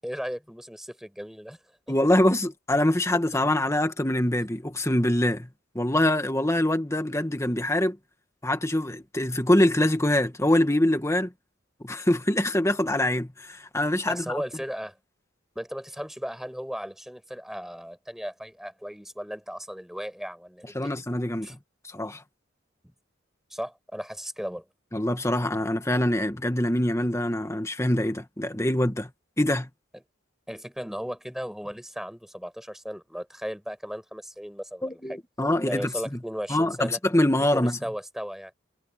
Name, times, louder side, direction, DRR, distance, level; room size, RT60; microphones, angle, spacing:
voice 1, 0.0-1.6 14.1-15.0 15.6-21.0 21.4-21.5 22.8-22.9 23.5-24.7 29.9-30.0 30.5-35.2 35.7-37.0 37.4-38.5, equal, ahead, 7.4 m, -36 dB
voice 2, 1.9-5.5 5.8-8.0 8.4-11.3 11.8-14.4 20.8-21.6 21.9-22.2 24.9-29.1 29.4-29.7 34.8-35.9 36.5-37.8, left 1 dB, 15° left, 1.7 m, -24 dB
head